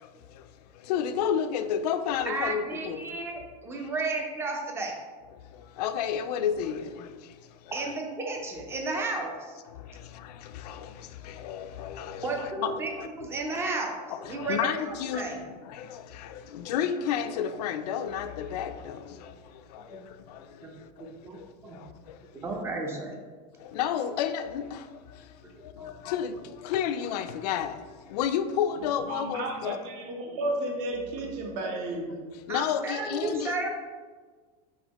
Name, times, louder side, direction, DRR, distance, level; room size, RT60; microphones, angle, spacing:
voice 1, 0.9-3.0 3.3-3.4 5.8-7.1 7.8-7.9 10.2-10.9 11.2-13.1 14.1-19.3 19.7-20.0 23.6-24.8 25.8-26.4 26.6-27.8 28.1-29.8 32.5-33.5, left 8 dB, 80° left, 0.4 m, -31 dB
voice 2, 2.3-4.9 7.7-9.6 12.2-14.0 14.3-14.6 15.2-15.4 19.9-20.0 20.6-20.7 21.2-21.4 21.6-21.8 22.4-23.2 25.8-25.9 32.5-33.7, right 3 dB, 10° right, 0.5 m, -33 dB
voice 3, 29.1-32.2, right 2 dB, 50° right, 0.8 m, -33 dB
4.1 x 4.1 x 2.9 m
supercardioid pair, 160°, 20 cm